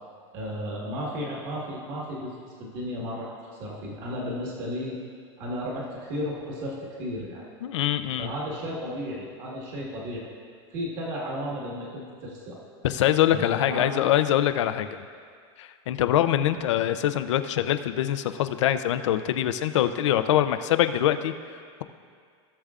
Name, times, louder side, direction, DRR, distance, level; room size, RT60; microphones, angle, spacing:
voice 1, 0.3-3.3 3.6-5.0 5.4-7.4 8.2-10.3 10.7-12.6 13.3-14.0, equal, 35° right, -4 dB, 1.5 m, -34 dB
voice 2, 7.6-8.3 12.8-14.9 15.6-21.3, left 11 dB, 90° left, 10 dB, 0.6 m, -24 dB
17.0 x 6.7 x 2.4 m, 2.1 s
supercardioid pair, 175°, 15 cm